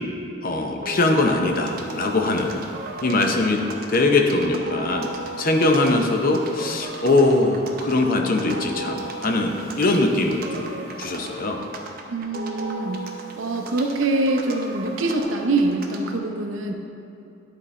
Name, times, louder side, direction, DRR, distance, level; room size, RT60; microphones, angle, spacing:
voice 1, 0.4-2.6 3.0-3.6 3.9-5.1 5.4-10.7 11.0-11.6, left 2 dB, 45° left, 3 dB, 0.6 m, -21 dB
sound 1, 0.8-16.2, right 2 dB, 50° right, 0.7 m, -36 dB
voice 2, 12.1-13.1 13.4-16.7, right 2 dB, 85° right, 3 dB, 0.6 m, -24 dB
11.0 x 4.1 x 3.2 m, 2.7 s
head